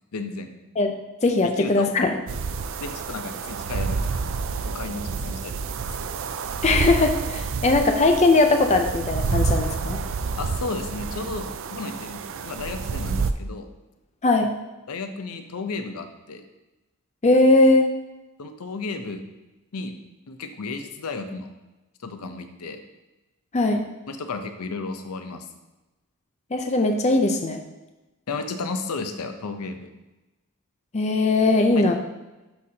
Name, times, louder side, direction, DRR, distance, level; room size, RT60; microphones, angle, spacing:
voice 1, 0.1-0.5 1.4-2.0 2.8-4.1 4.6-5.8 10.4-13.7 14.9-16.4 18.4-19.2 19.7-20.0 20.3-21.5 22.0-22.8 24.1-25.5 28.3-29.9 31.7-31.9, left 3 dB, 80° left, 7 dB, 0.6 m, -33 dB
voice 2, 1.2-2.1 6.6-10.0 14.2-14.5 17.2-17.9 23.5-23.9 26.5-27.6 30.9-31.9, left 2 dB, 30° left, 4 dB, 0.5 m, -19 dB
sound 1, 2.3-13.3, right 4 dB, 60° right, 0.4 m, -28 dB
11.5 x 4.2 x 2.8 m, 1.1 s
head